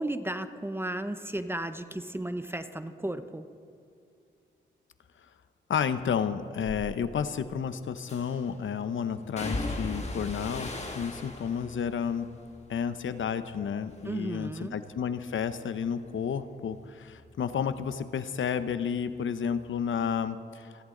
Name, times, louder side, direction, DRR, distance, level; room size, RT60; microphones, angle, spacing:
voice 1, 0.0-3.5 14.0-14.8, right 1 dB, 10° right, 9 dB, 0.8 m, -34 dB
voice 2, 5.7-12.3 12.7-20.7, left 7 dB, 80° left, 12 dB, 0.8 m, -31 dB
sound 1, 6.6-6.8 8.1-8.5 9.4-13.6 13.9-14.5 14.9-18.2 18.5-19.6 19.9-20.0, left 2 dB, 35° left, 2.1 m, -40 dB
29.0 x 11.5 x 3.9 m, 2.5 s
cardioid pair, 75°, 20 cm